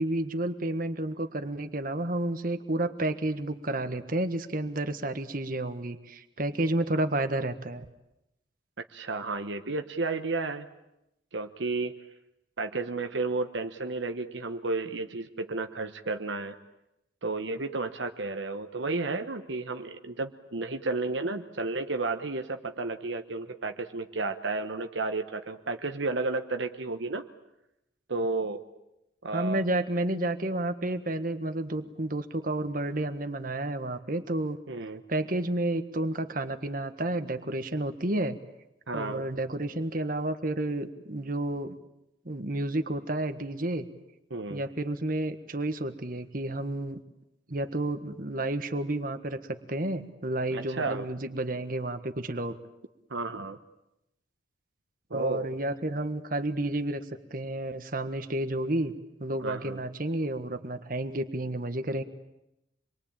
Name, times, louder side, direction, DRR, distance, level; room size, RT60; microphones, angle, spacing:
voice 1, 0.0-7.9 29.3-34.6 35.1-38.4 38.9-41.7 42.2-43.9 44.5-47.0 47.5-52.5 55.1-57.0 57.3-58.9 59.2-62.0, right 1 dB, 45° right, 8 dB, 1.5 m, -31 dB
voice 2, 8.9-10.7 11.3-12.0 12.6-16.6 17.2-27.2 28.1-28.6 29.2-29.6 34.7-35.0 38.9-39.3 44.3-44.6 50.5-51.1 53.1-53.6 55.1-55.6 59.4-59.8, right 3 dB, 75° right, 6 dB, 1.1 m, -32 dB
27.0 x 22.5 x 8.8 m, 0.89 s
head